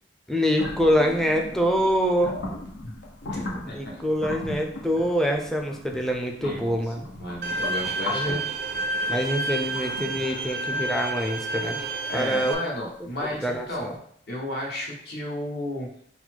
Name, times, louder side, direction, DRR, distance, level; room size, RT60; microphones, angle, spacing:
voice 1, 0.3-2.4 3.7-7.1 8.1-8.4 9.1-11.9 12.1-12.6 13.3-13.9, equal, ahead, 2 dB, 0.4 m, -25 dB
sound 1, 0.6-13.4, left 2 dB, 85° left, 0.9 m, -38 dB
voice 2, 3.7-4.0 6.4-8.4 12.1-13.9 14.3-15.9, left 1 dB, 60° left, -3 dB, 1.1 m, -33 dB
Bowed string instrument, 7.4-12.5, right 2 dB, 55° right, 0.4 m, -30 dB
4.1 x 2.1 x 4.5 m, 0.67 s
head